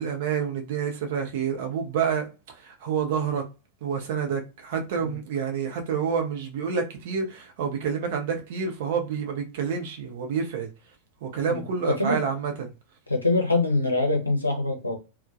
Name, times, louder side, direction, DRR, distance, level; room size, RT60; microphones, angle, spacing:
voice 1, 0.0-2.3 2.5-3.5 3.8-10.7 11.2-12.7, right 6 dB, 55° right, 0.6 m, -28 dB
voice 2, 11.4-12.2 13.1-15.0, left 2 dB, 85° left, 0.6 m, -24 dB
2.2 x 2.2 x 2.5 m
figure-of-eight pair, 90°, 0 cm